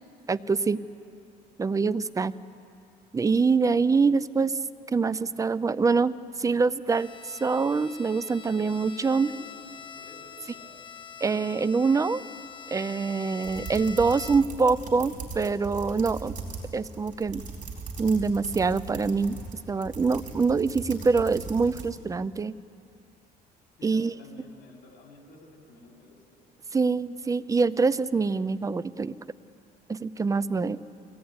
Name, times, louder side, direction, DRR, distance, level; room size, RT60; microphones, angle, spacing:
voice 1, 0.3-0.8 1.6-2.3 3.1-4.5 4.9-9.3 11.2-12.2 12.7-16.4 16.7-17.4 18.0-19.4 19.7-22.5 23.8-24.1 26.7-29.2 29.9-30.8, right 4 dB, 20° right, 15 dB, 0.5 m, -25 dB
Bowed string instrument, 6.9-14.7, left 6 dB, 30° left, 0.8 m, -44 dB
voice 2, 9.2-10.8 23.8-26.5, left 2 dB, 75° left, 1 dB, 3.6 m, -51 dB
sound 1, 13.4-21.9, right 4 dB, 50° right, 4.3 m, -39 dB
22.5 x 16.5 x 9.6 m, 2.5 s
cardioid pair, 110°, 17 cm